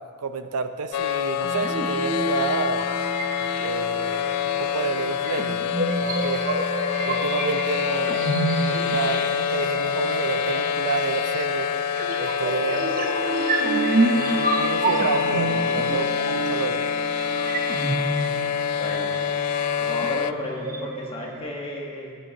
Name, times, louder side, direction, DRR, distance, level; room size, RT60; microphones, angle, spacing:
voice 1, 0.0-2.9 3.4-4.3 4.6-5.7 6.0-6.5 7.1-8.2 8.5-11.7 12.2-12.9 14.1-16.8, right 5 dB, 80° right, 10 dB, 0.5 m, -30 dB
sound 1, 0.9-20.3, left 8 dB, 85° left, 0.3 m, -26 dB
sound 2, 1.4-21.4, right 2 dB, 40° right, 0.9 m, -29 dB
voice 2, 18.8-19.1 19.7-22.1, left 1 dB, 25° left, -2 dB, 1.6 m, -33 dB
16.5 x 8.7 x 3.0 m, 2.1 s
head